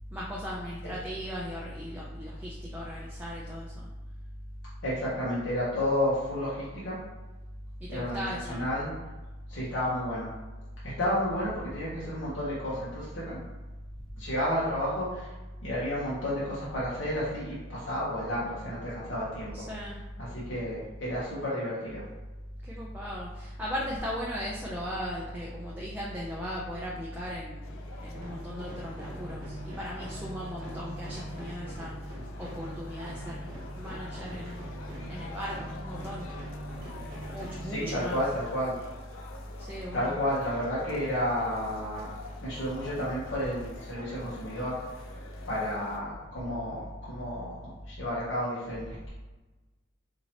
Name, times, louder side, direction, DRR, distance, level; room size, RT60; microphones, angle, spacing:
voice 1, 0.1-3.9 7.9-8.7 19.5-20.0 22.7-27.7 28.0-31.9 32.4-34.7 35.1-36.3 37.3-38.2 39.6-40.2, equal, 10° right, -5 dB, 0.4 m, -37 dB
voice 2, 4.8-7.0 7.9-8.9 9.5-10.3 10.8-13.4 14.1-15.3 15.6-19.7 20.2-22.1 37.7-38.8 39.9-42.1 42.4-44.8 45.5-49.1, left 1 dB, 60° left, -8 dB, 1.0 m, -31 dB
sound 1, 27.6-46.0, left 3 dB, 75° left, 0.5 m, -47 dB
sound 2, 28.1-38.3, right 1 dB, 45° right, 1.1 m, -44 dB
4.2 x 2.8 x 2.8 m, 1.2 s
head